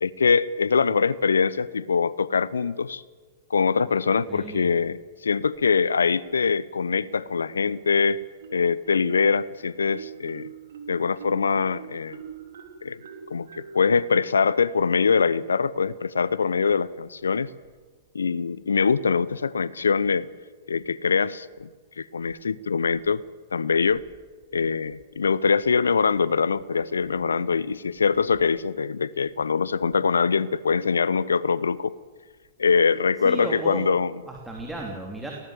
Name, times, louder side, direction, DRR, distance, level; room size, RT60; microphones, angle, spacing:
voice 1, 0.0-3.0 3.5-8.2 8.5-10.5 10.9-12.2 12.8-13.0 13.3-17.5 18.1-20.3 20.7-21.7 22.0-23.2 23.5-24.0 24.5-31.9 32.6-34.1, left 5 dB, 80° left, 20 dB, 0.8 m, -23 dB
voice 2, 4.3-4.7 33.2-33.9 34.3-35.3, right 2 dB, 5° right, -1 dB, 3.3 m, -34 dB
Marimba xylophone, 8.4-9.3 9.8-15.3, right 7 dB, 65° right, 3.5 m, -43 dB
18.5 x 18.0 x 8.2 m, 1.4 s
figure-of-eight pair, 110°, 0 cm